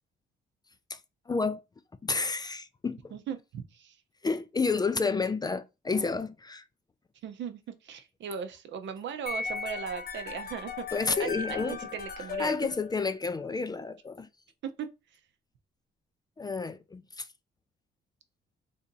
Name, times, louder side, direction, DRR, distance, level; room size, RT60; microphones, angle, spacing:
voice 1, 1.3-1.6 2.0-3.1 4.2-6.6 10.9-11.8 12.4-14.3 16.4-17.3, left 4 dB, 20° left, 0.3 m, -30 dB
voice 2, 3.1-4.0 7.2-10.8 11.2-12.7 14.6-14.9, right 7 dB, 70° right, 0.6 m, -38 dB
sound 1, 9.3-13.4, left 5 dB, 55° left, 0.8 m, -37 dB
3.4 x 2.7 x 3.9 m
cardioid pair, 90°, 20 cm